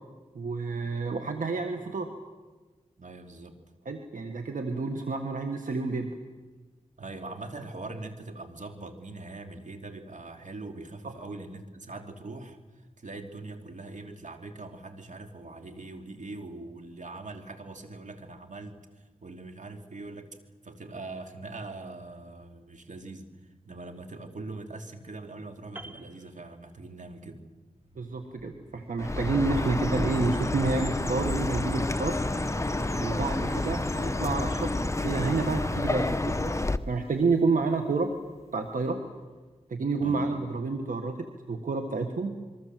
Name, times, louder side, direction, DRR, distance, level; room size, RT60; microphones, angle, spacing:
voice 1, 0.3-2.1 3.8-6.2 11.0-11.1 27.9-32.2 33.0-34.7 35.0-36.6 36.9-38.1 38.5-39.0 39.7-42.3, right 3 dB, 85° right, 5 dB, 1.7 m, -29 dB
voice 2, 3.0-3.6 7.0-12.6 13.0-20.4 20.6-27.4 40.0-40.2, right 2 dB, 70° right, 5 dB, 2.9 m, -42 dB
Piano, 25.8-27.2 27.5-27.7, right 2 dB, 15° right, 3.0 m, -48 dB
Motorcycle, 27.7-39.4, right 1 dB, 45° right, 3.5 m, -48 dB
Chirp tweet, 29.0-36.8, left 2 dB, 20° left, 1.1 m, -29 dB
26.5 x 23.0 x 7.7 m, 1.3 s
cardioid pair, 45°, 13 cm